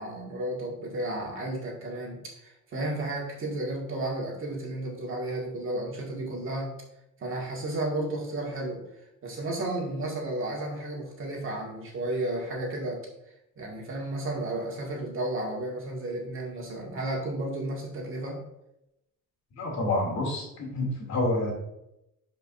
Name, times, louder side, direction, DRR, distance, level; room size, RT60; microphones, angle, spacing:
voice 1, 0.0-6.7 7.2-8.8 9.2-13.1 13.6-18.4, right 1 dB, 40° right, -1 dB, 2.0 m, -33 dB
voice 2, 19.5-21.5, left 2 dB, 55° left, -2 dB, 2.8 m, -28 dB
11.5 x 5.1 x 2.6 m, 0.84 s
cardioid pair, 170°, 33 cm